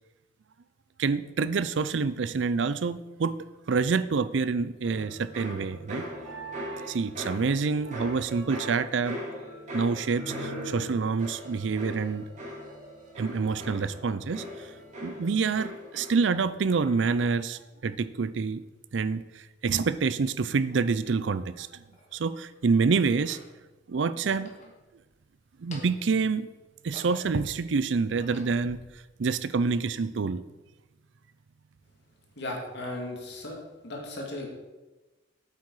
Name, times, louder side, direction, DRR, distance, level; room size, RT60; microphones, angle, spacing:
voice 1, 1.0-3.4 3.7-6.1 6.9-9.2 9.7-12.2 13.2-14.4 15.0-18.6 18.9-19.2 19.6-21.8 22.1-23.4 23.9-24.5 25.6-26.5 26.8-28.8 29.2-30.4, right 4 dB, 70° right, 16 dB, 0.5 m, -27 dB
sound 1, 4.8-16.4 16.7-17.2, equal, 40° right, 3.1 m, -40 dB
sound 2, 21.8-22.3 23.0-23.5 24.3-25.2 25.5-26.2 26.6-27.5 28.0-28.8, left 1 dB, 35° left, 1.8 m, -49 dB
voice 2, 32.4-33.6 33.8-34.5, left 1 dB, 60° left, 0 dB, 2.3 m, -36 dB
8.5 x 8.4 x 4.8 m, 1.1 s
head